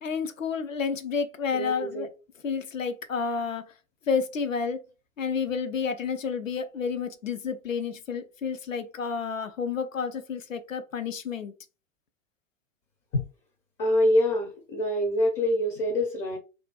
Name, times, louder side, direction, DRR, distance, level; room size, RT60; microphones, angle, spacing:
voice 1, 0.0-2.1 2.4-3.6 4.1-4.8 5.2-11.5, left 5 dB, 85° left, 0.5 m, -30 dB
voice 2, 1.5-2.1 13.1-13.2 13.8-16.4, left 1 dB, 20° left, 0.4 m, -25 dB
2.5 x 2.2 x 2.3 m
figure-of-eight pair, 95°, 38 cm